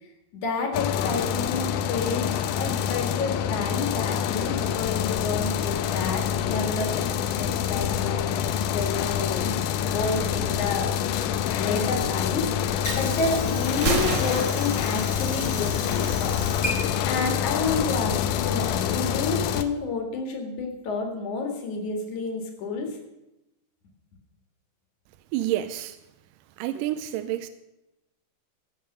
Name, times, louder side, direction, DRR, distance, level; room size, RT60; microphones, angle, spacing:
voice 1, 0.3-7.1 7.4-9.5 9.9-10.9 11.6-16.4 17.1-23.0, left 4 dB, 55° left, 3.2 m, -30 dB
sound 1, 0.7-19.6, left 9 dB, 80° left, 1.9 m, -26 dB
Water / Sink (filling or washing), 12.6-18.4, equal, 5° left, 2.8 m, -37 dB
Gunshot gunfire, 13.7-15.7, right 3 dB, 50° right, 1.3 m, -30 dB
voice 2, 25.3-26.0 26.6-27.5, right 13 dB, 80° right, 2.0 m, -28 dB
16.0 x 7.3 x 6.6 m
omnidirectional pair, 4.3 m